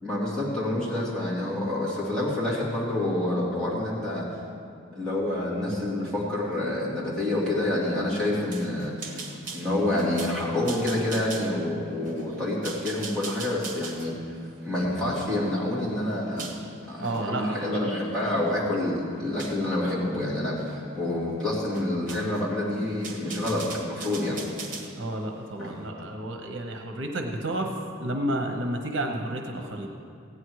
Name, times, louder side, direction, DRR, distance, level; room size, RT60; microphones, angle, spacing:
voice 1, 0.0-4.2 4.9-9.0 9.5-14.1 14.6-16.5 16.9-24.4 25.6-25.8, left 1 dB, 5° left, -9 dB, 2.9 m, -28 dB
sound 1, 8.5-16.6 17.0-17.3 17.8-18.5 19.4-19.7 20.6-20.8 21.1-21.2 21.7-22.5 22.9-24.9, right 4 dB, 40° right, 1.5 m, -41 dB
voice 2, 17.0-17.9 25.0-27.7 28.0-29.9, right 1 dB, 65° right, 3 dB, 1.0 m, -31 dB
16.0 x 9.5 x 4.8 m, 2.5 s
head